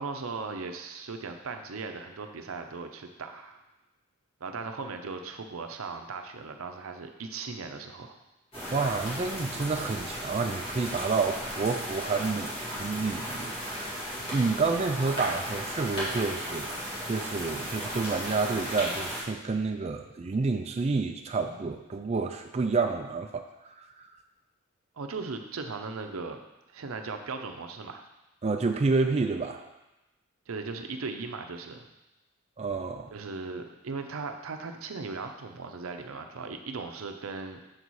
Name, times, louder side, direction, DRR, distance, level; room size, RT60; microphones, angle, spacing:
voice 1, 0.0-3.6 4.4-8.2 25.0-26.4 26.7-28.0 30.5-31.9 33.1-37.6, right 4 dB, 85° right, 5 dB, 0.6 m, -38 dB
sound 1, 8.5-19.2, equal, 25° left, 2.1 m, -35 dB
voice 2, 8.7-14.0 14.3-24.1 28.4-29.6 32.6-33.1, right 4 dB, 30° right, 5 dB, 0.3 m, -29 dB
6.6 x 4.1 x 4.7 m, 1.0 s
head